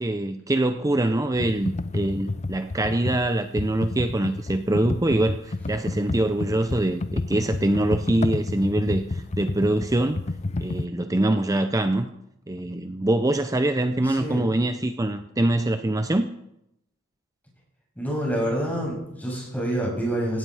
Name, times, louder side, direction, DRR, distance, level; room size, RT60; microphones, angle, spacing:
voice 1, 0.0-10.2 10.6-12.1 12.5-16.3, right 1 dB, 15° right, 8 dB, 0.6 m, -24 dB
Computer keyboard, 1.4-10.9, left 2 dB, 35° left, 0.6 m, -30 dB
voice 2, 14.0-14.5 18.0-20.4, right 1 dB, 10° left, -3 dB, 7.3 m, -27 dB
17.5 x 13.5 x 4.9 m, 0.81 s
head